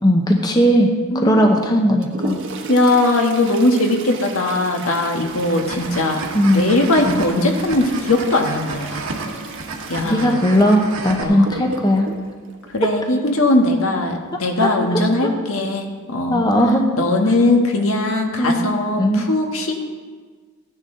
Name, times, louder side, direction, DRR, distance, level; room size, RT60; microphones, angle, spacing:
voice 1, 0.0-2.4 6.3-6.7 7.0-7.3 10.1-12.1 14.6-14.7 15.2-15.3 16.3-16.8 18.4-18.7 19.0-19.3, equal, 20° left, 2 dB, 1.0 m, -17 dB
voice 2, 1.1-1.5 2.7-6.3 6.5-9.0 9.9-10.3 11.2-11.5 12.7-16.4 17.0-19.9, left 2 dB, 70° left, 2 dB, 1.6 m, -19 dB
Toilet flush, 1.6-13.6 15.5-15.6 15.9-16.0 16.8-16.9 17.5-17.8 18.2-18.4, right 2 dB, 55° right, 1.3 m, -35 dB
sound 1, 5.2-11.2, right 3 dB, 75° right, 1.8 m, -32 dB
15.0 x 10.5 x 3.9 m, 1.5 s
head